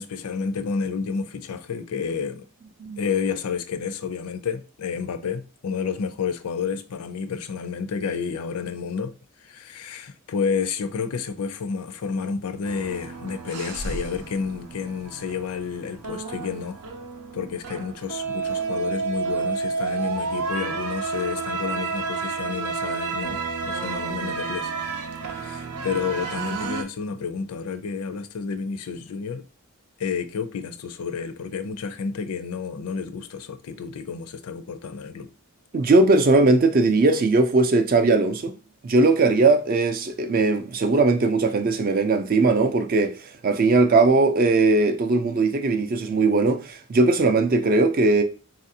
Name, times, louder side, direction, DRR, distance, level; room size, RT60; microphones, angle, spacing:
voice 1, 0.0-2.4 3.0-9.1 9.4-16.8 17.3-24.7 25.3-29.4 30.0-35.3, left 6 dB, 80° left, 0.4 m, -30 dB
sound 1, 12.6-26.8, right 4 dB, 85° right, 0.6 m, -30 dB
voice 2, 35.7-38.5 38.8-48.2, right 3 dB, 40° right, 0.4 m, -19 dB
4.0 x 2.4 x 2.7 m
head